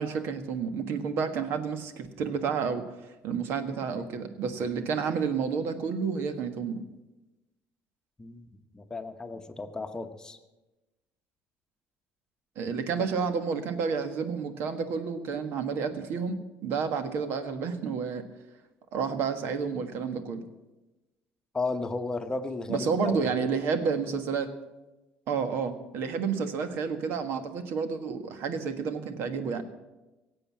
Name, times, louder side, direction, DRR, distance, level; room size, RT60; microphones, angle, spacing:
voice 1, 0.0-2.9 3.2-6.8 12.5-18.3 18.9-20.4 22.7-24.5 25.3-29.6, right 5 dB, 65° right, 9 dB, 1.5 m, -30 dB
voice 2, 8.7-10.4 21.5-23.3, left 3 dB, 15° left, 7 dB, 1.0 m, -34 dB
17.0 x 8.0 x 7.6 m, 1.1 s
cardioid pair, 105°, 4 cm